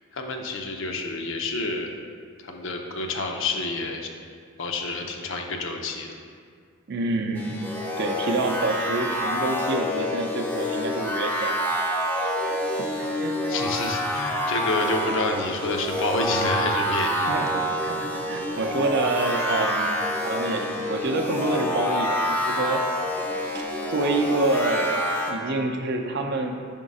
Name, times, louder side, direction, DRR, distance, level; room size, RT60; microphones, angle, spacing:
voice 1, 0.1-1.9 2.4-4.1 4.6-6.2 13.5-17.3, left 3 dB, 60° left, 2 dB, 0.6 m, -29 dB
voice 2, 6.9-7.5 8.0-11.7 12.1-12.8 13.2-13.3 17.3-19.9 20.2-22.8 23.5-23.6 23.9-26.5, right 2 dB, 50° right, 3 dB, 0.5 m, -27 dB
sound 1, 7.4-25.3, equal, 10° left, 0.5 m, -27 dB
5.5 x 3.6 x 5.3 m, 2.1 s
head